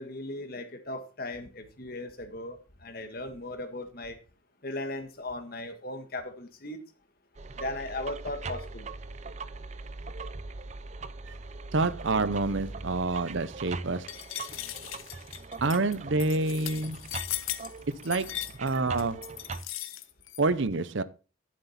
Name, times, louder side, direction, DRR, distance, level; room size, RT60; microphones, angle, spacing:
voice 1, 0.0-4.2 4.6-6.8 7.5-8.9, left 2 dB, 45° left, 1.6 m, -37 dB
sound 1, 7.4-19.6, right 3 dB, 35° right, 0.5 m, -41 dB
voice 2, 11.7-14.1 15.6-17.0 18.0-19.3 20.4-21.0, right 3 dB, 65° right, 0.7 m, -28 dB
sound 2, 14.1-20.4, left 13 dB, 85° left, 0.9 m, -38 dB
13.0 x 7.6 x 4.2 m
head